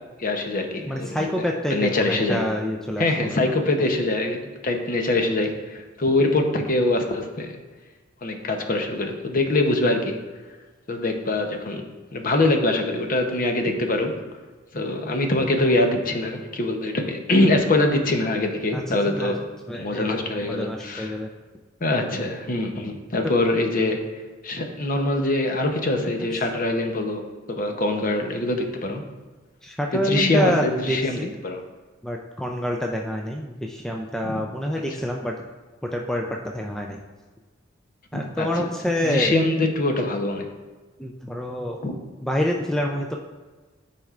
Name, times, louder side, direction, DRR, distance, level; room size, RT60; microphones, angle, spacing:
voice 1, 0.2-1.3 1.7-2.4 3.0-7.6 8.2-10.2 10.9-11.9 12.1-14.1 14.7-19.5 19.7-21.2 21.8-24.0 24.4-29.0 29.9-31.2 31.4-31.6 34.2-34.4 38.1-38.5 39.0-40.5 41.8-41.9, left 2 dB, 45° left, 4 dB, 0.8 m, -23 dB
voice 2, 0.9-3.4 18.7-19.3 19.7-20.1 20.4-21.3 26.2-26.4 29.6-31.3 32.0-35.3 35.8-37.0 38.1-39.4 41.0-41.8 42.2-43.2, equal, 5° left, 0 dB, 0.3 m, -27 dB
12.5 x 4.2 x 2.5 m, 1.3 s
head